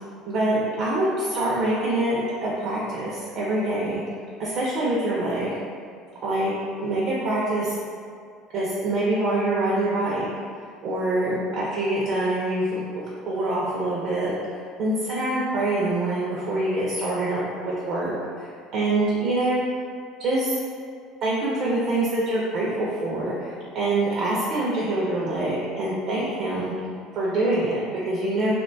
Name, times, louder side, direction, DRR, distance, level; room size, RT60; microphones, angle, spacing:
voice 1, 0.3-4.0 4.4-5.5 6.2-6.5 6.8-7.8 8.5-10.3 10.8-14.3 14.8-19.7 20.2-20.6 21.2-26.7 27.1-28.5, right 2 dB, 45° right, -6 dB, 0.4 m, -25 dB
2.4 x 2.1 x 2.5 m, 2.2 s
cardioid pair, 160°, 0 cm